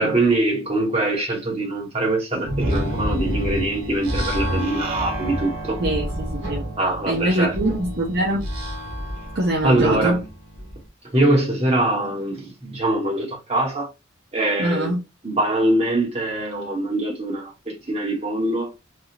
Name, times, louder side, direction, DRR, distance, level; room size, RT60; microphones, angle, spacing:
voice 1, 0.0-5.8 6.8-7.5 9.6-10.2 11.0-13.9 14.3-15.0 15.2-18.7, right 2 dB, 30° right, 1.4 m, -23 dB
sound 1, 2.4-10.8, equal, 85° right, 1.1 m, -28 dB
voice 2, 5.8-6.7 7.1-8.5 9.3-10.2 14.6-15.0, right 1 dB, 55° right, 0.8 m, -23 dB
3.6 x 2.4 x 2.8 m
head